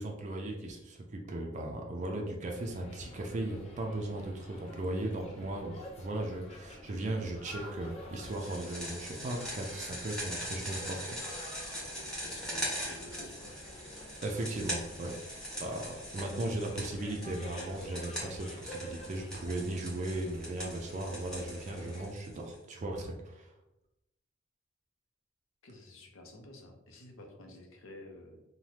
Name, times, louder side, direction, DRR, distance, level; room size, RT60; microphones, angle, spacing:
voice 1, 0.0-11.2 14.2-23.5, right 1 dB, 35° right, 1 dB, 0.4 m, -37 dB
sound 1, 2.5-22.1, left 1 dB, 35° left, 0.6 m, -50 dB
sound 2, 8.2-22.5, equal, 5° left, 1.2 m, -42 dB
voice 2, 11.7-13.6 25.6-28.4, left 2 dB, 90° left, 3 dB, 0.6 m, -51 dB
3.2 x 2.1 x 2.8 m, 0.94 s
head